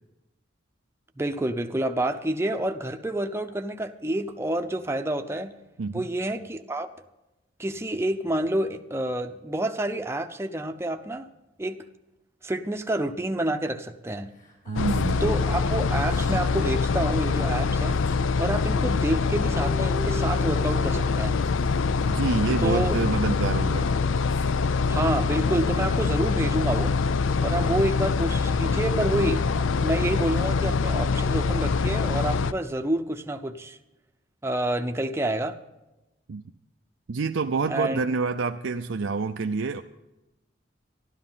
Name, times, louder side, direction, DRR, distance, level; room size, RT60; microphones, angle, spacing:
voice 1, 1.2-5.5 5.9-6.9 7.6-11.3 11.6-11.8 12.4-14.3 15.2-18.0 18.4-21.4 22.6-23.0 24.9-27.0 27.4-33.8 34.4-35.6 37.7-38.0, right 1 dB, 15° right, 6 dB, 0.7 m, -28 dB
sound 1, 14.4-28.0, left 1 dB, 45° left, 4.1 m, -42 dB
voice 2, 14.7-15.3 22.1-23.9 36.3-36.4 37.1-39.8, right 4 dB, 75° right, 6 dB, 0.5 m, -27 dB
sound 2, 14.8-32.5, left 4 dB, 80° left, 0.5 m, -24 dB
13.0 x 12.0 x 5.6 m, 0.97 s
head